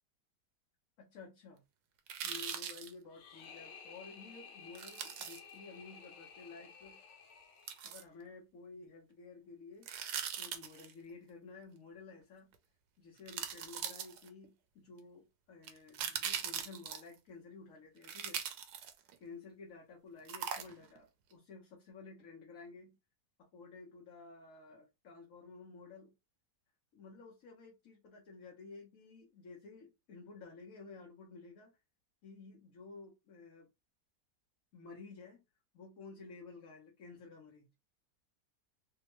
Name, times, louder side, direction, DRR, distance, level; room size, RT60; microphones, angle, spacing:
voice 1, 1.0-1.6 2.2-7.0 7.8-9.9 10.4-12.5 13.0-18.4 19.2-23.0 23.4-26.1 26.9-31.7 32.2-33.7 34.7-35.4 35.7-37.7, left 4 dB, 60° left, 1.1 m, -53 dB
sound 1, 2.1-2.9 4.7-5.4 7.7-8.0 9.8-10.9 12.5-12.6 13.3-14.4 15.6-17.1 18.0-19.2 20.3-21.0 21.3-21.4, right 8 dB, 75° right, 1.1 m, -40 dB
sound 2, 3.1-8.2, left 6 dB, 90° left, 1.3 m, -54 dB
3.3 x 2.1 x 2.9 m
omnidirectional pair, 1.8 m